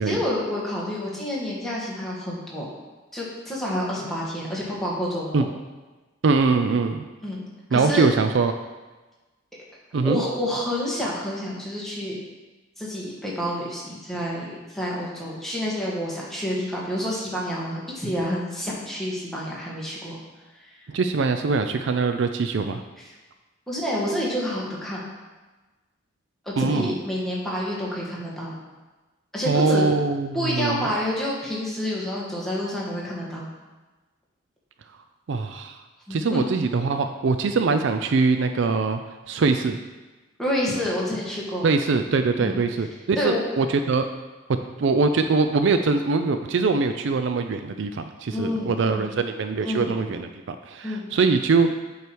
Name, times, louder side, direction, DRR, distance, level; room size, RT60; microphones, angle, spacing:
voice 1, 0.0-2.6 3.1-5.4 7.2-7.4 7.7-8.1 10.0-12.2 12.8-20.2 20.6-20.7 23.0-23.1 23.7-25.0 26.4-28.6 29.3-29.8 30.3-33.5 36.1-36.4 40.4-41.6 42.4-42.6 43.2-43.4 48.3-49.1 49.6-49.9 50.8-51.0, left 1 dB, ahead, -6 dB, 1.7 m, -28 dB
voice 2, 6.2-7.0 7.7-8.5 9.9-10.2 20.9-22.8 26.6-26.9 29.5-30.9 35.3-35.8 36.1-39.0 39.3-39.8 41.6-44.1 44.8-51.7, right 4 dB, 60° right, 8 dB, 0.4 m, -22 dB
8.1 x 4.8 x 4.6 m, 1.2 s
head